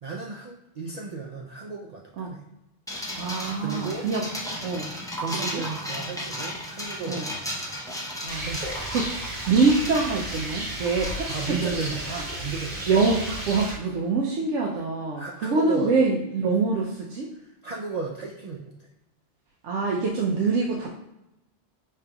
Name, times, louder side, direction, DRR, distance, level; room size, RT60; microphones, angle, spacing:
voice 1, 0.0-2.4 3.6-4.1 5.2-7.8 8.4-8.8 11.3-12.9 15.2-16.0 17.3-18.9, right 4 dB, 65° right, -2 dB, 0.4 m, -35 dB
sound 1, 2.9-12.4, equal, 5° left, 0.4 m, -35 dB
voice 2, 3.2-4.2 4.6-4.9 5.3-5.7 7.1-7.3 8.2-8.5 8.9-9.1 9.5-12.3 12.9-17.3 19.6-20.9, right 4 dB, 85° right, -2 dB, 0.9 m, -25 dB
Rain, 8.3-13.7, right 1 dB, 40° right, 1.1 m, -33 dB
5.1 x 3.2 x 2.2 m, 0.91 s
omnidirectional pair, 1.2 m